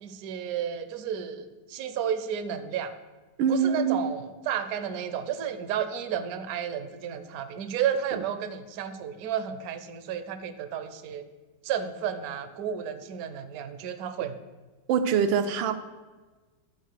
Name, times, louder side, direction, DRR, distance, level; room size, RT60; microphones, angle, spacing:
voice 1, 0.0-2.9 3.5-11.3 11.6-14.4, right 8 dB, 65° right, 10 dB, 1.0 m, -32 dB
voice 2, 3.4-4.1 8.1-8.2 14.9-15.8, right 6 dB, 85° right, 9 dB, 1.4 m, -24 dB
12.0 x 4.3 x 6.5 m, 1.3 s
omnidirectional pair, 2.1 m